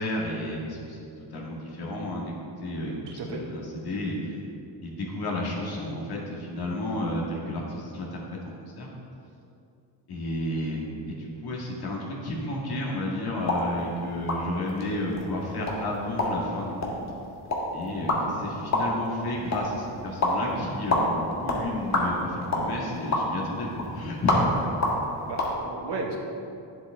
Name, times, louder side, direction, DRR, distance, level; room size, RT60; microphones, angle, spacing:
voice 1, 0.0-4.4 4.8-8.9 10.1-16.9 17.7-24.9, left 1 dB, 55° left, -3 dB, 2.0 m, -32 dB
voice 2, 2.8-3.4 18.1-18.4 25.2-26.2, right 4 dB, 65° right, 1 dB, 1.3 m, -35 dB
sound 1, 13.4-25.5, left 1 dB, 35° left, 1.5 m, -29 dB
10.0 x 7.7 x 3.7 m, 2.6 s
cardioid pair, 130°, 44 cm